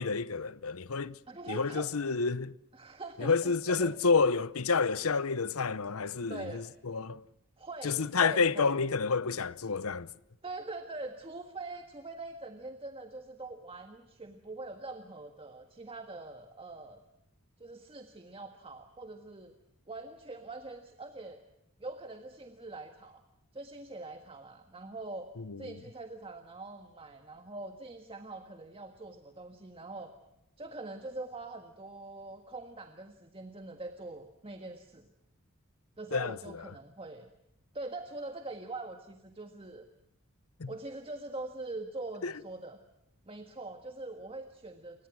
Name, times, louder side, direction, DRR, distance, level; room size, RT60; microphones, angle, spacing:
voice 1, 0.0-1.2 1.5-2.6 3.2-7.2 7.8-10.1 25.5-25.6 36.1-36.4 40.6-40.7 42.2-42.3, left 4 dB, 70° left, 0.8 m, -29 dB
voice 2, 1.3-2.1 2.7-4.0 6.3-6.6 7.6-8.8 10.4-17.0 17.6-19.5 19.9-21.4 21.8-23.2 23.5-25.3 25.6-30.1 30.6-35.1 36.0-37.3 37.7-39.9 40.7-42.8 43.2-45.1, right 2 dB, 25° right, 1.6 m, -43 dB
29.0 x 23.5 x 6.2 m
head